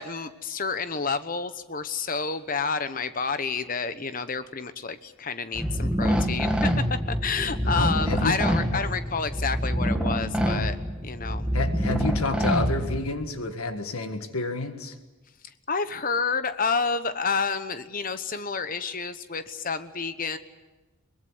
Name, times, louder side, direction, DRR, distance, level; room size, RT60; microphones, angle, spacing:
voice 1, 0.0-10.8 11.0-11.5 15.7-20.4, left 5 dB, 40° left, 11 dB, 1.1 m, -29 dB
sound 1, 5.5-13.2, equal, 5° right, 1.8 m, -26 dB
voice 2, 7.6-8.4 8.7-8.8 11.5-15.0, left 3 dB, 80° left, 8 dB, 1.8 m, -29 dB
23.0 x 20.5 x 8.2 m, 1.1 s
head